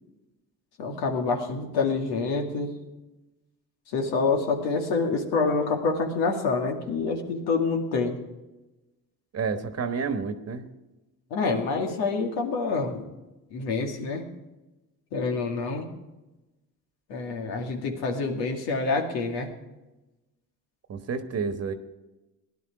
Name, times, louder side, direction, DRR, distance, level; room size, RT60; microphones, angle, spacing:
voice 1, 0.8-2.7 3.9-8.2 11.3-13.0 13.5-14.3 15.1-15.9 17.1-19.5, left 4 dB, 85° left, 2 dB, 2.3 m, -27 dB
voice 2, 9.3-10.7 20.9-21.7, right 5 dB, 40° right, 8 dB, 1.3 m, -30 dB
16.5 x 11.0 x 4.8 m, 1.0 s
cardioid pair, 95°, 38 cm